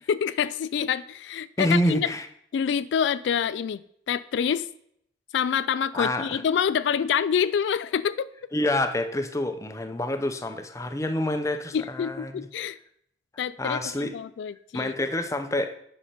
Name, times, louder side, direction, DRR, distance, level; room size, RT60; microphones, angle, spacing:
voice 1, 0.1-2.1 2.5-3.8 4.1-4.7 5.3-8.3 11.7-12.8 13.4-14.9, left 7 dB, 80° left, 16 dB, 0.3 m, -26 dB
voice 2, 1.6-2.3 5.9-6.4 8.5-12.5 13.6-14.1 14.7-15.7, left 1 dB, 15° left, 8 dB, 0.6 m, -27 dB
8.3 x 5.7 x 5.7 m, 0.71 s
head